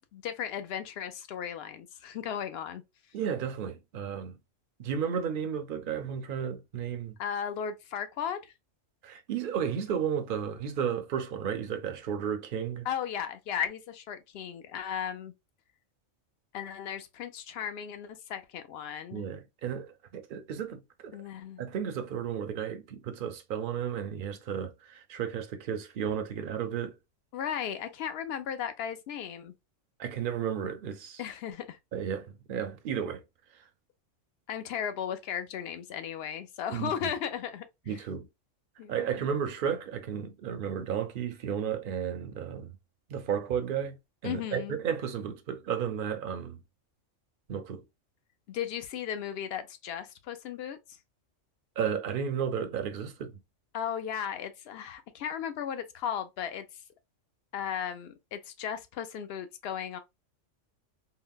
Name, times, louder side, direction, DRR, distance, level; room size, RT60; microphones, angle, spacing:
voice 1, 0.1-2.8 7.2-8.5 12.8-15.3 16.5-19.2 21.1-21.6 27.3-29.5 31.2-31.8 34.5-38.0 38.8-39.1 44.2-44.8 48.5-51.0 53.7-56.8 57.5-60.0, left 8 dB, 65° left, 0.7 m, -36 dB
voice 2, 3.1-4.4 4.8-7.2 9.0-12.9 19.1-21.2 21.6-27.0 30.0-31.2 31.9-33.2 36.7-36.9 37.9-38.3 38.9-42.7 43.1-44.0 44.2-46.6 47.5-47.8 51.8-53.4, right 8 dB, 55° right, 0.6 m, -33 dB
3.8 x 2.1 x 2.2 m
omnidirectional pair, 1.3 m